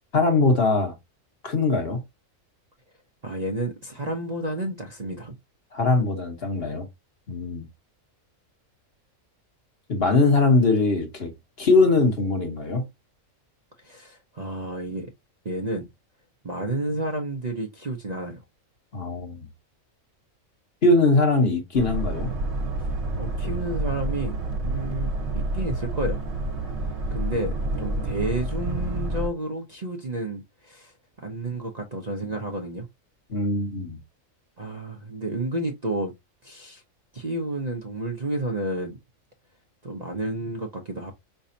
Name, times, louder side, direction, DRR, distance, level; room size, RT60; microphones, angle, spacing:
voice 1, 0.1-0.9 1.4-2.0 5.7-6.9 7.3-7.7 9.9-11.3 11.6-12.8 18.9-19.4 20.8-22.3 33.3-34.0, left 3 dB, 50° left, 1.5 m, -21 dB
voice 2, 3.2-5.4 13.8-15.1 15.4-15.9 16.4-18.4 22.8-22.9 23.2-26.2 27.1-32.9 34.6-36.1 36.4-36.8 37.1-39.0 39.8-41.1, right 2 dB, 35° right, 0.8 m, -31 dB
Boat Water vehicle, 21.8-29.3, right 1 dB, 55° right, 1.4 m, -28 dB
5.5 x 3.4 x 2.7 m
omnidirectional pair, 1.4 m